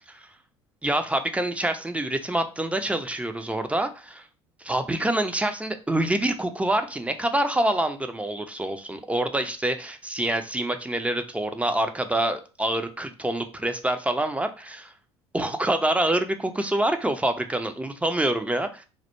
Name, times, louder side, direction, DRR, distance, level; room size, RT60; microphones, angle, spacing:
voice 1, 0.8-4.3 4.6-14.9 15.3-18.8, right 1 dB, 10° right, 7 dB, 0.4 m, -26 dB
2.1 x 2.0 x 2.9 m, 0.33 s
hypercardioid pair, 60°, 14 cm